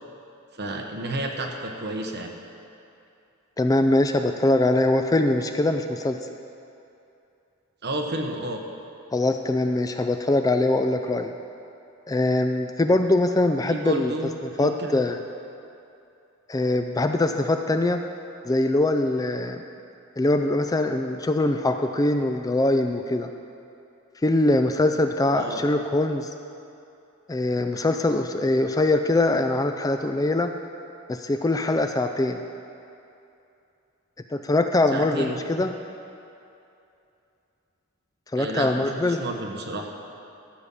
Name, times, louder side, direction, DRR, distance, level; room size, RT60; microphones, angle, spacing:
voice 1, 0.5-2.3 7.8-8.6 13.6-14.3 14.6-15.0 25.3-25.6 34.9-35.4 38.4-39.9, right 1 dB, 50° right, 2 dB, 1.2 m, -31 dB
voice 2, 3.6-6.2 9.1-11.3 12.1-14.1 14.6-15.2 16.5-18.0 18.4-19.6 20.2-23.3 24.2-26.3 27.3-30.5 31.1-32.4 34.3-35.7 38.3-39.2, left 2 dB, 15° left, 6 dB, 0.3 m, -22 dB
13.0 x 7.6 x 5.6 m, 2.7 s
head